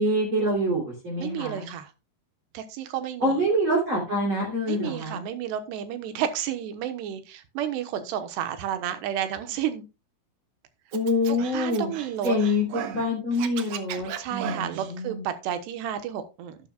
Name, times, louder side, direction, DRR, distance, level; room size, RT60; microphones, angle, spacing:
voice 1, 0.0-1.7 3.2-5.2 10.9-11.9 12.2-12.7 12.9-15.2, left 1 dB, 35° right, -2 dB, 3.5 m, -26 dB
voice 2, 1.2-1.9 2.5-3.4 4.7-9.9 11.2-12.3 12.7-13.0 14.2-16.6, right 10 dB, 90° right, 9 dB, 3.3 m, -31 dB
Scratching (performance technique), 10.9-13.0 13.3-14.9, right 10 dB, 75° right, 1.8 m, -36 dB
11.5 x 11.0 x 2.3 m, 0.27 s
omnidirectional pair, 4.7 m